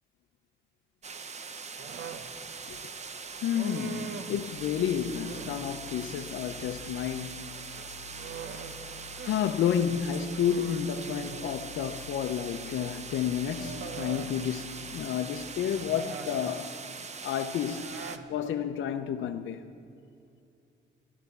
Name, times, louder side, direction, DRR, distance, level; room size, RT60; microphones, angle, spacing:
sound 1, 1.0-18.2, right 5 dB, 35° right, 0.8 m, -42 dB
Human voice, 1.8-2.3 3.5-4.4 5.1-5.7 7.6-9.4 9.7-9.8 10.3-11.6 12.8-12.9 13.5-14.3 15.7-16.6 17.6-18.3, right 6 dB, 65° right, 1.1 m, -42 dB
voice 1, 3.4-7.5 9.2-16.7 17.2-17.9 18.3-19.6, left 9 dB, 70° left, 0.7 m, -30 dB
sound 2, 4.5-15.0, left 11 dB, 80° right, 1.8 m, -50 dB
13.0 x 12.0 x 6.8 m
cardioid pair, 90°, 20 cm